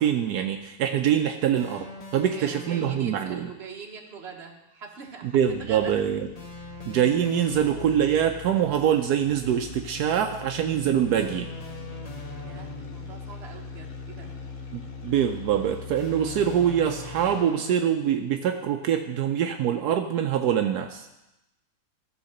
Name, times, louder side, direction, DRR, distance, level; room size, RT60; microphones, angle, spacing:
voice 1, 0.0-1.9 2.1-3.5 5.2-6.3 6.9-11.5 14.7-21.1, right 9 dB, 80° right, 5 dB, 0.8 m, -24 dB
sound 1, 1.5-3.4 6.3-8.2 11.1-13.1 15.9-18.1, left 2 dB, 35° left, 0.6 m, -42 dB
voice 2, 2.3-5.9 12.4-14.3, right 5 dB, 35° right, 1 dB, 1.3 m, -42 dB
sound 2, 5.4-17.5, left 4 dB, 70° left, 2.3 m, -41 dB
14.5 x 4.9 x 6.5 m, 0.92 s
omnidirectional pair, 2.4 m